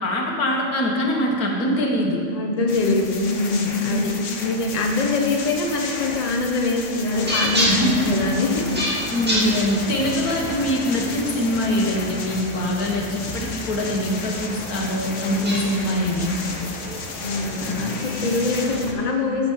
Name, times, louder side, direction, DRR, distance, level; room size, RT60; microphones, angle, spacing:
voice 1, 0.0-2.2 3.9-4.1 7.7-8.2 9.1-16.4, left 1 dB, 90° left, 0 dB, 2.0 m, -23 dB
voice 2, 2.3-8.8 17.2-19.5, left 3 dB, 30° left, 2 dB, 1.1 m, -23 dB
sound 1, 2.7-18.9, left 4 dB, 60° left, 1.3 m, -34 dB
sound 2, 7.1-18.9, equal, 5° right, 2.1 m, -30 dB
10.0 x 7.1 x 7.2 m, 2.3 s
omnidirectional pair, 1.5 m